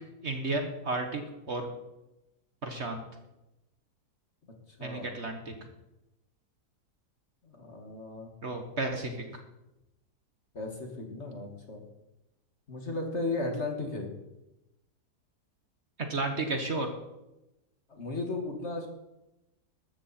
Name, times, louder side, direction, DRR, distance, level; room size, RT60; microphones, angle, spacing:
voice 1, 0.2-1.7 2.6-3.0 4.8-5.5 8.4-9.2 16.0-16.9, right 2 dB, 45° right, 5 dB, 1.5 m, -32 dB
voice 2, 4.8-5.1 7.4-8.3 10.5-11.8 12.7-14.1 17.9-18.9, left 2 dB, 45° left, 3 dB, 2.3 m, -35 dB
14.5 x 13.0 x 4.4 m, 0.95 s
omnidirectional pair, 1.7 m